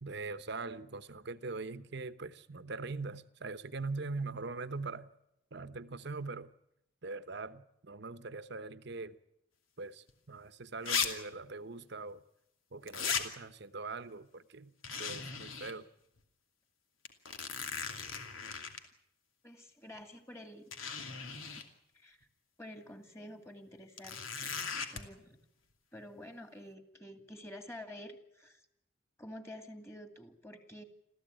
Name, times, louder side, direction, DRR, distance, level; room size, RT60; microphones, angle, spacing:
voice 1, 0.0-5.1 5.5-6.5 7.0-9.2 9.8-12.2 12.7-15.9, right 3 dB, 55° right, 1.0 m, -42 dB
sound 1, 10.1-10.2 10.9-11.1 11.3-11.4 12.9-13.2 14.8-15.7 16.2-16.3 17.0-18.8 19.9-20.0 20.7-21.7 24.0-25.0, left 6 dB, 85° left, 2.7 m, -37 dB
voice 2, 19.4-20.7 21.4-21.6 21.9-22.3 22.6-24.5 24.9-25.4 25.9-28.6 29.2-30.8, left 1 dB, 15° left, 2.3 m, -49 dB
27.0 x 15.0 x 9.1 m
head